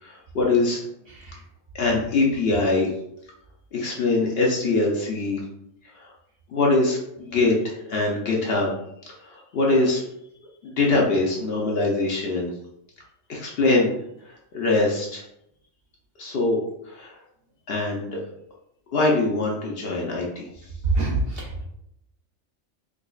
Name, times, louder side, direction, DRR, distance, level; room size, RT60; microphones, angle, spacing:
voice 1, 0.0-0.8 1.7-2.9 3.7-5.4 6.0-6.1 6.5-8.7 9.2-10.0 10.6-12.5 13.3-13.9 14.2-15.2 16.2-16.6 16.8-17.2 17.7-18.2 18.9-20.5, left 2 dB, 60° left, -2 dB, 0.8 m, -23 dB
voice 2, 21.0-21.6, right 1 dB, 55° right, -2 dB, 0.8 m, -25 dB
4.9 x 2.3 x 2.3 m, 0.79 s
omnidirectional pair, 1.3 m